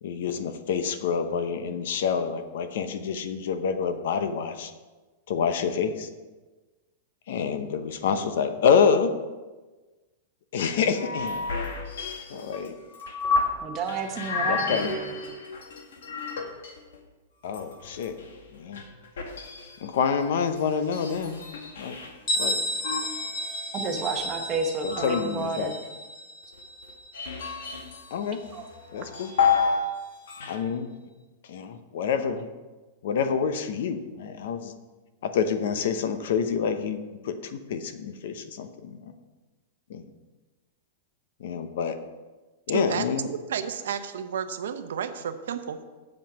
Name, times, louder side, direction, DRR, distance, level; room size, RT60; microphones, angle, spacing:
voice 1, 0.0-4.7 5.3-6.1 7.3-9.2 10.5-11.5 12.3-12.8 14.5-14.9 17.4-18.2 18.5-18.8 19.8-21.4 21.8-22.0 22.4-22.6 24.8-25.7 28.1-28.4 28.9-29.3 30.5-30.9 31.5-32.5 33.0-34.7 35.2-37.0 37.2-39.0 39.9-40.1 41.4-42.0 42.7-43.3, left 6 dB, 55° left, 10 dB, 0.8 m, -27 dB
sound 1, 10.8-13.6 13.9-17.0 17.4-22.1 22.8-25.8 26.6-28.1 28.4-29.9 30.2-30.6, left 5 dB, 90° left, 1.7 m, -31 dB
voice 2, 13.6-15.1 23.7-25.8 28.5-28.7, right 4 dB, 20° right, 3 dB, 1.0 m, -31 dB
Bell, 22.3-27.8, equal, 25° left, 1.5 m, -33 dB
voice 3, 42.7-45.8, right 8 dB, 80° right, 9 dB, 0.8 m, -32 dB
7.6 x 7.5 x 6.0 m, 1.2 s
supercardioid pair, 175°, 0 cm